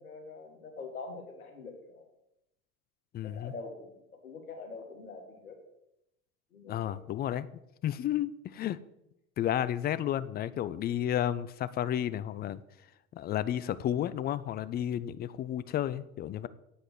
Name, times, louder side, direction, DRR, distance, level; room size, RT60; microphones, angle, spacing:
voice 1, 0.0-2.1 3.2-3.9 4.2-5.6 6.5-7.0, left 4 dB, 90° left, 3 dB, 1.7 m, -44 dB
voice 2, 3.1-3.5 6.7-7.5 7.8-8.8 9.4-12.6 13.1-16.5, left 11 dB, 25° left, 16 dB, 0.3 m, -32 dB
8.3 x 5.1 x 6.2 m, 0.83 s
hypercardioid pair, 75°, 43 cm